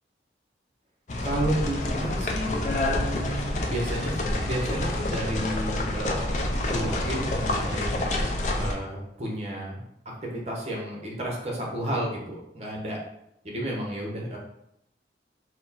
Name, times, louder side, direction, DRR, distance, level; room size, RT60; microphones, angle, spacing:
sound 1, 1.1-8.7, left 1 dB, 40° left, 0.5 m, -28 dB
voice 1, 1.2-6.3 6.7-9.8 10.2-13.0 13.4-14.4, right 1 dB, 35° right, -1 dB, 1.0 m, -32 dB
sound 2, 1.4-8.4, right 1 dB, 75° right, 0.6 m, -43 dB
4.7 x 2.2 x 4.0 m, 0.78 s
head